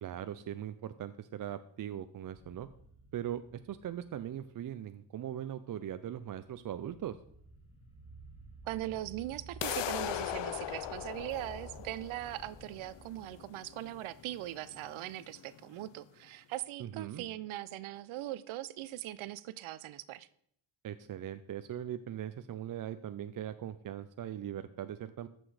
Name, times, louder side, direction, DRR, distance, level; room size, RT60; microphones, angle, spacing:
voice 1, 0.0-2.7 3.1-7.2 16.8-17.2 20.8-25.3, right 10 dB, 45° right, 0.5 m, -40 dB
sound 1, 2.4-4.6 6.0-14.9, right 2 dB, 15° left, 2.4 m, -54 dB
voice 2, 8.7-20.3, right 14 dB, 75° right, 0.7 m, -40 dB
sound 2, 9.6-15.6, left 13 dB, 60° left, 0.6 m, -39 dB
14.0 x 6.1 x 4.9 m
cardioid pair, 110°, 48 cm